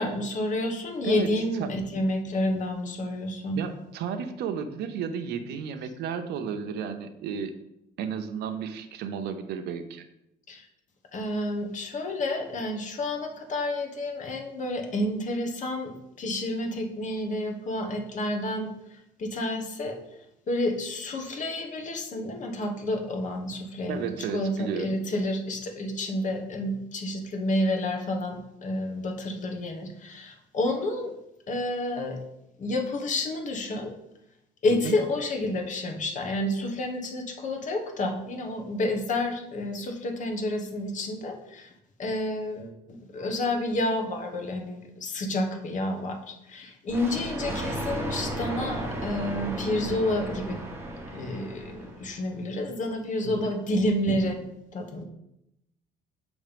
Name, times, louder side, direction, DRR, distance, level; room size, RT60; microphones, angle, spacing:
voice 1, 0.0-3.6 10.5-10.7 11.1-18.7 19.2-20.0 20.5-31.1 31.5-32.2 32.6-33.9 34.6-41.7 42.0-42.7 43.1-50.6 51.1-54.4 54.7-55.0, left 1 dB, 50° left, 4 dB, 1.2 m, -29 dB
voice 2, 1.0-1.3 1.6-1.7 3.5-7.5 8.0-10.0 23.9-25.0 34.7-35.0 53.2-53.5, right 7 dB, 80° right, 8 dB, 0.7 m, -33 dB
Thunder, 46.9-52.2, right 1 dB, 15° right, 1.2 m, -34 dB
7.3 x 3.2 x 5.1 m, 0.84 s
cardioid pair, 110°, 17 cm